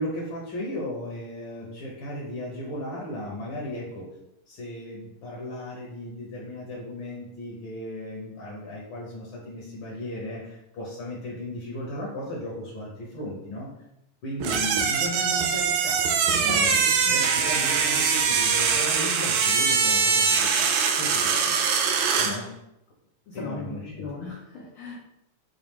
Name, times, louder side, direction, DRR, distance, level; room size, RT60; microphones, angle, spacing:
voice 1, 0.0-4.1 4.5-13.7 14.2-16.8 17.1-22.5 23.3-24.1, left 1 dB, 60° left, -3 dB, 1.4 m, -36 dB
sound 1, 14.4-22.4, right 6 dB, 85° right, 2.0 m, -23 dB
voice 2, 16.4-17.2 22.2-22.3 23.3-24.9, left 3 dB, 80° left, -3 dB, 1.2 m, -37 dB
6.2 x 2.4 x 3.5 m, 0.84 s
omnidirectional pair, 3.3 m